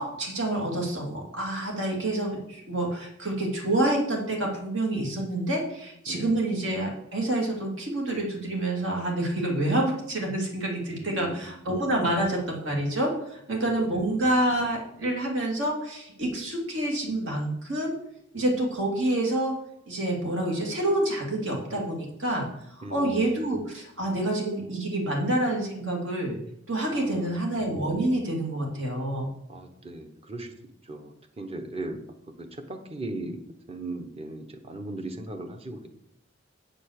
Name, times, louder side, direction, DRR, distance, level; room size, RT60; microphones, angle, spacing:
voice 1, 0.0-17.9 18.3-19.5 19.9-22.5 22.7-26.4 26.7-29.3, right 1 dB, 70° right, 0 dB, 2.6 m, -27 dB
voice 2, 6.1-6.4 11.0-11.6 13.6-14.2 22.8-23.2 26.9-27.3 29.5-30.5 30.9-32.0 32.4-33.4 33.7-35.9, right 2 dB, 30° right, 6 dB, 1.1 m, -38 dB
9.0 x 5.5 x 6.6 m, 0.77 s
head